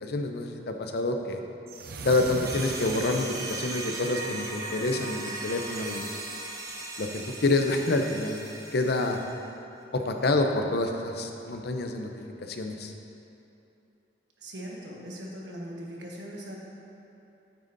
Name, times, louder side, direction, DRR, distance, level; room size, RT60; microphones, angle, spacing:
voice 1, 0.0-1.4 2.0-6.1 7.0-8.4 8.7-9.2 9.9-12.1 12.4-12.9, left 2 dB, 60° left, 4 dB, 0.6 m, -27 dB
sound 1, 1.7-5.0, right 4 dB, 55° right, 0.5 m, -40 dB
sound 2, 2.4-9.4, right 2 dB, 20° right, 0.7 m, -38 dB
voice 2, 14.4-16.5, equal, 75° right, -3 dB, 1.3 m, -40 dB
9.1 x 8.6 x 2.6 m, 2.8 s
head